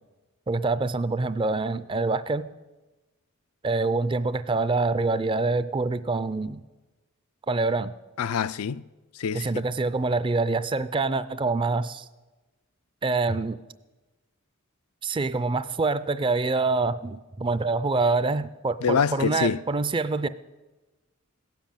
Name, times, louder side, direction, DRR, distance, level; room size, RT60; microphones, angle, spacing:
voice 1, 0.5-2.4 3.6-6.6 7.5-7.9 9.3-12.1 13.0-13.6 15.0-20.3, right 3 dB, 25° right, 0.4 m, -25 dB
voice 2, 8.2-8.8 9.2-9.5 18.8-19.6, left 6 dB, 80° left, 0.4 m, -25 dB
16.5 x 7.5 x 8.9 m
head